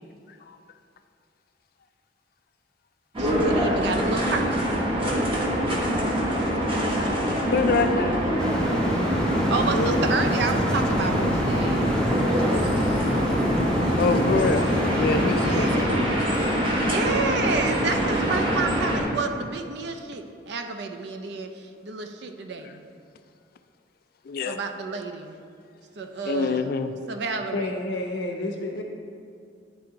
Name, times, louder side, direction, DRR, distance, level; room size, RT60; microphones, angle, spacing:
sound 1, 3.1-19.0, equal, 30° right, 0.9 m, -25 dB
voice 1, 3.2-4.6 9.5-12.0 15.3-16.1 16.8-22.8 24.4-25.4 26.0-26.7 27.1-27.8, right 4 dB, 65° right, 6 dB, 0.5 m, -30 dB
voice 2, 7.5-8.2 9.7-10.0 12.8-12.9 14.0-14.7 14.9-16.6 24.3-24.6 26.3-27.0, left 4 dB, 55° left, 9 dB, 0.3 m, -26 dB
sound 2, 8.4-15.9, equal, 5° left, 0.6 m, -26 dB
voice 3, 27.5-28.8, left 2 dB, 80° left, 2 dB, 0.8 m, -30 dB
9.6 x 3.4 x 3.8 m, 2.3 s
head